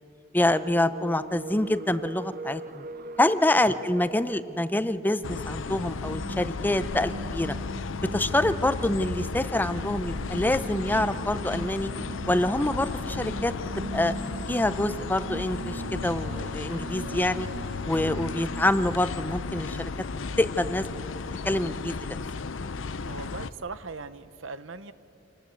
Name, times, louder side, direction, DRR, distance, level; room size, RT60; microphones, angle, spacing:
voice 1, 0.3-2.8 3.2-7.5 8.1-11.9 12.3-13.5 13.9-14.1 14.5-17.5 17.9-19.9 20.4-20.9 21.4-22.0, left 1 dB, 10° left, 12 dB, 0.6 m, -26 dB
sound 1, 0.6-18.7, right 2 dB, 45° right, 0.6 m, -41 dB
sound 2, 5.2-23.5, left 4 dB, 70° left, 0.7 m, -34 dB
voice 2, 23.0-24.9, right 4 dB, 75° right, 13 dB, 1.0 m, -39 dB
27.5 x 19.0 x 8.3 m, 2.9 s
head